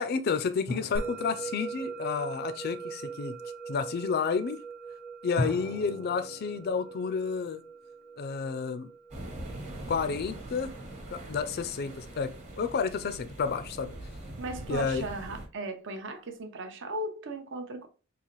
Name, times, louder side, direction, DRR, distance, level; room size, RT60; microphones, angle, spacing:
voice 1, 0.0-3.4 3.7-4.6 5.2-7.6 8.2-8.9 9.9-10.7 11.1-13.9 14.7-15.1, left 5 dB, 50° left, 0.4 m, -31 dB
sound 1, 0.7-3.0 5.4-8.3, left 1 dB, 85° right, 1.2 m, -40 dB
Musical instrument, 1.0-11.6, right 4 dB, 5° right, 0.5 m, -41 dB
sound 2, 9.1-15.5, right 1 dB, 35° right, 1.1 m, -42 dB
voice 2, 14.4-17.9, right 2 dB, 65° right, 0.6 m, -37 dB
3.9 x 2.4 x 3.0 m
head